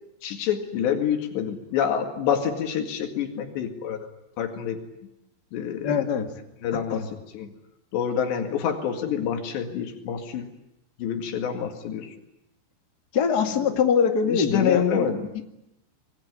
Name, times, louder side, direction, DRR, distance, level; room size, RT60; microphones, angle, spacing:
voice 1, 0.2-4.1 4.4-4.8 5.5-5.9 6.6-7.0 7.3-7.5 7.9-10.5 11.0-12.1 14.2-15.3, left 8 dB, 80° left, 5 dB, 4.3 m, -27 dB
voice 2, 5.8-6.3 6.9-7.1 13.1-15.4, left 6 dB, 35° left, 5 dB, 1.8 m, -23 dB
26.0 x 22.0 x 9.8 m, 0.86 s
omnidirectional pair, 4.9 m